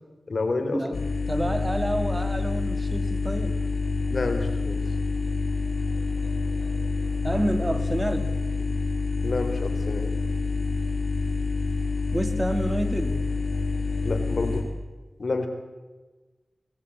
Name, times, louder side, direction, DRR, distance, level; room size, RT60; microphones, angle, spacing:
voice 1, 0.3-0.8 4.1-4.8 9.2-10.1 14.0-14.6 15.2-15.5, left 3 dB, 65° left, 6 dB, 4.0 m, -28 dB
sound 1, 0.9-14.6, left 3 dB, 85° left, 4.7 m, -27 dB
voice 2, 1.3-3.6 7.2-8.4 12.1-13.3, right 1 dB, 20° right, 9 dB, 2.4 m, -28 dB
23.0 x 20.0 x 8.8 m, 1.2 s
cardioid pair, 50°, 0 cm